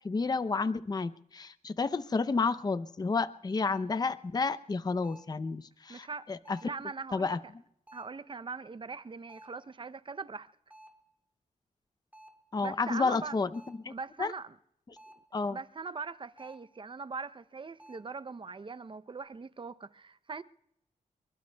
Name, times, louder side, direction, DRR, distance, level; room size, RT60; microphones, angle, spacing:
voice 1, 0.0-6.6 7.1-7.4 12.5-14.3 15.3-15.6, left 4 dB, 30° left, 0.6 m, -31 dB
sound 1, 3.6-4.0 5.0-5.4 6.4-6.8 7.9-8.2 9.3-9.7 10.7-11.1 12.1-12.5 13.5-13.9 15.0-15.4 16.4-16.8 17.8-18.2, right 1 dB, 10° right, 2.6 m, -55 dB
voice 2, 5.9-6.3 6.6-7.3 7.9-10.5 12.6-13.4 13.9-14.6 15.5-20.4, right 4 dB, 35° right, 0.6 m, -41 dB
26.0 x 23.0 x 2.3 m
wide cardioid pair, 90°, 14 cm